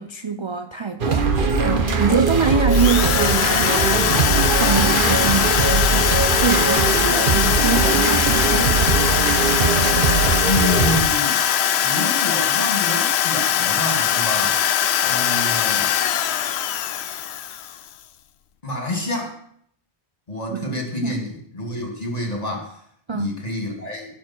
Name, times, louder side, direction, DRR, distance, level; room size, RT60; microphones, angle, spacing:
voice 1, 0.0-1.4 1.6-8.9 20.5-21.2 23.1-23.4, right 5 dB, 35° right, 0.5 m, -24 dB
sound 1, 1.0-11.0, right 4 dB, 55° right, 1.2 m, -20 dB
Drill, 2.7-17.9, left 9 dB, 80° left, 0.9 m, -21 dB
voice 2, 10.4-11.4 11.8-14.6 15.0-15.9 18.6-19.3 20.3-22.8 23.1-24.1, left 1 dB, 35° left, 2.5 m, -28 dB
15.5 x 7.3 x 4.5 m
omnidirectional pair, 1.1 m